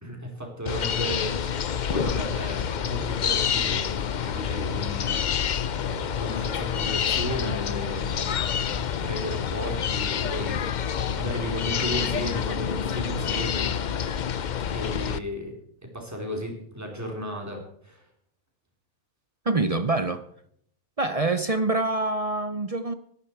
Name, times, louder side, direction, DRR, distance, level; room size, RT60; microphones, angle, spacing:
voice 1, 0.0-1.6 1.9-5.4 5.7-10.8 11.2-13.7 14.7-15.5 15.9-18.0, equal, 10° right, 3.7 m, -34 dB
sound 1, 0.7-15.2, left 8 dB, 60° left, 0.4 m, -28 dB
voice 2, 19.5-20.2 21.0-22.9, right 2 dB, 40° right, 0.6 m, -25 dB
18.0 x 11.5 x 4.6 m
omnidirectional pair, 1.5 m